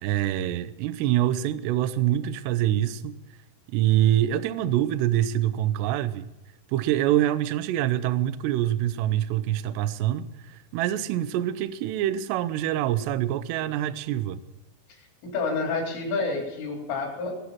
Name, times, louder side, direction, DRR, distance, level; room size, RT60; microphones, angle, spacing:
voice 1, 0.0-3.2 3.7-6.3 6.7-14.4, right 12 dB, 80° right, 2.5 m, -25 dB
voice 2, 15.0-17.4, left 3 dB, 75° left, 6.5 m, -29 dB
23.0 x 8.1 x 6.0 m
omnidirectional pair, 5.7 m